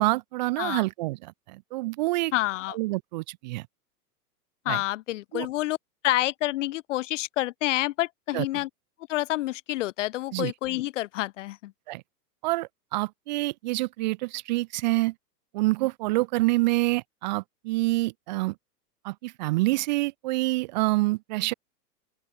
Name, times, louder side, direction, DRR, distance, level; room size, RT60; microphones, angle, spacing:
voice 1, 0.0-2.3 2.7-3.7 4.7-4.8 5.3-5.5 8.3-8.4 10.3-10.5 11.9-12.0 12.4-15.1 15.5-18.5 19.0-21.5, right 21 dB, 30° right, 0.5 m, -27 dB
voice 2, 2.3-2.8 4.6-5.8 6.0-8.7 9.1-11.7, left 16 dB, 50° left, 0.6 m, -28 dB
open air
hypercardioid pair, 130°, 49 cm